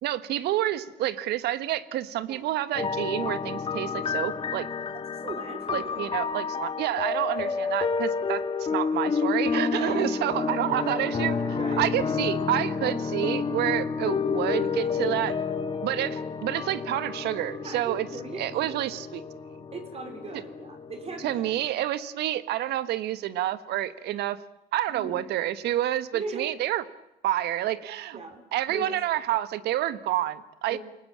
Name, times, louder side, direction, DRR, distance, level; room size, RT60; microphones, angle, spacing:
voice 1, 0.0-4.7 5.7-15.4 15.8-18.1 18.4-19.2 21.2-24.4 24.7-26.8 27.2-28.2 28.5-30.8, right 13 dB, 75° right, 14 dB, 1.5 m, -29 dB
sound 1, 2.7-21.7, left 5 dB, 30° left, 1.8 m, -30 dB
voice 2, 5.2-5.8 7.3-7.6 9.7-10.5 11.6-11.9 17.6-18.8 19.7-21.5 24.9-25.2 26.1-26.6 28.1-28.4 28.7-29.0 30.7-30.8, right 3 dB, 35° right, 4 dB, 4.4 m, -38 dB
28.5 x 19.5 x 8.6 m, 0.86 s
cardioid pair, 110°, 17 cm